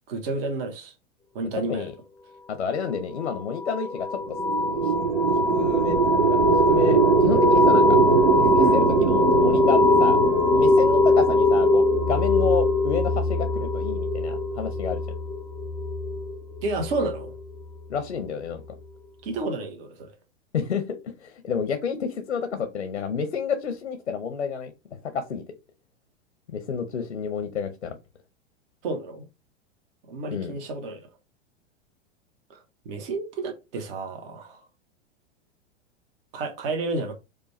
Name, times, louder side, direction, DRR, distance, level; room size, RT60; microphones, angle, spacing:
voice 1, 0.1-0.9 1.3-1.9 8.6-8.8 16.6-17.3 19.2-20.1 28.8-29.2 30.1-31.1 32.5-34.6 36.3-37.1, right 3 dB, 55° right, 1.2 m, -31 dB
voice 2, 2.5-4.2 4.7-4.9 5.5-6.0 6.3-6.4 6.7-8.0 8.4-10.2 10.5-15.0 17.9-18.6 20.5-25.4 26.5-28.0 30.3-30.5, left 6 dB, 85° left, 0.8 m, -30 dB
sound 1, 3.2-17.6, left 3 dB, 10° left, 0.5 m, -22 dB
sound 2, 4.2-12.7, right 8 dB, 75° right, 0.5 m, -23 dB
4.9 x 2.3 x 3.2 m
hypercardioid pair, 100°, 34 cm